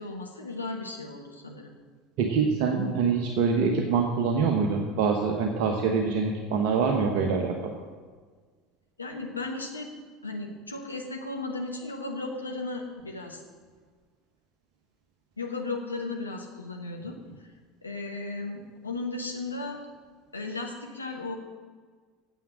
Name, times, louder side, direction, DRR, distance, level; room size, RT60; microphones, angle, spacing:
voice 1, 0.0-1.7 9.0-9.9 10.2-13.4 15.4-17.5 17.8-19.8 20.3-21.4, left 3 dB, 90° left, 2 dB, 1.1 m, -35 dB
voice 2, 2.2-7.7, right 5 dB, 60° right, 2 dB, 1.1 m, -25 dB
9.3 x 7.5 x 7.5 m, 1.5 s
figure-of-eight pair, 70°, 0 cm